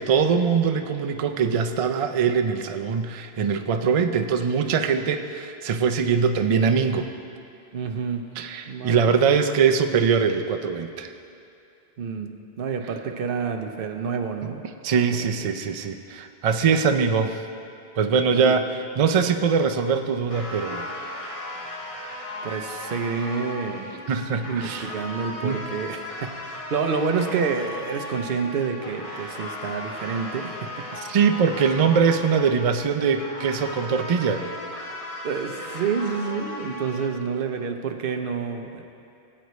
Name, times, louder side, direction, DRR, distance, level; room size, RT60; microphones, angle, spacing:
voice 1, 0.0-7.1 8.4-11.1 14.8-17.4 18.0-20.9 24.1-24.9 25.4-25.6 31.0-34.5, right 6 dB, 45° right, 6 dB, 0.5 m, -22 dB
voice 2, 7.7-8.2 8.7-8.9 12.0-14.6 15.2-15.3 18.3-18.6 22.4-23.9 24.4-30.7 35.2-38.8, right 5 dB, 65° right, 5 dB, 0.9 m, -28 dB
sound 1, 20.3-37.1, left 1 dB, 35° left, 0.9 m, -36 dB
18.5 x 8.0 x 3.1 m, 2.7 s
omnidirectional pair, 1.0 m